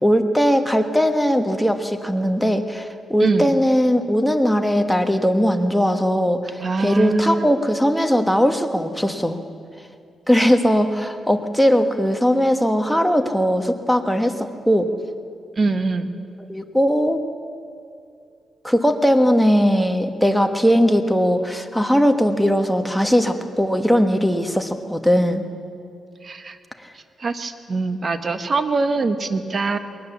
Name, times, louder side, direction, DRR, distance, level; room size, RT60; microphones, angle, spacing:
voice 1, 0.0-9.4 10.3-14.9 16.5-17.2 18.6-25.4 26.8-26.9, equal, ahead, 6 dB, 1.3 m, -19 dB
voice 2, 6.6-7.5 15.6-16.1 26.2-26.6 27.2-29.8, right 3 dB, 45° right, 10 dB, 1.2 m, -23 dB
21.0 x 18.5 x 7.2 m, 2.5 s
cardioid pair, 90°, 0 cm